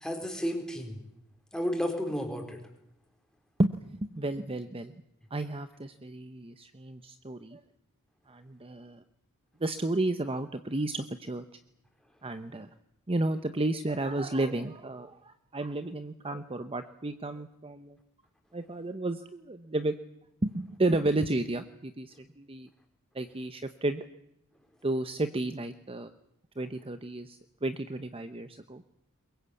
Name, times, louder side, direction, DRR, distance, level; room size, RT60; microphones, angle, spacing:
voice 1, 0.0-1.0 1.5-2.6, equal, 5° left, 3 dB, 4.2 m, -32 dB
voice 2, 3.6-4.9 5.3-7.6 8.3-9.0 9.6-11.4 12.2-12.7 13.1-18.0 18.5-20.0 20.4-22.7 23.1-24.0 24.8-26.1 26.6-28.8, right 2 dB, 25° right, 9 dB, 0.9 m, -32 dB
22.5 x 21.0 x 8.4 m, 0.80 s
head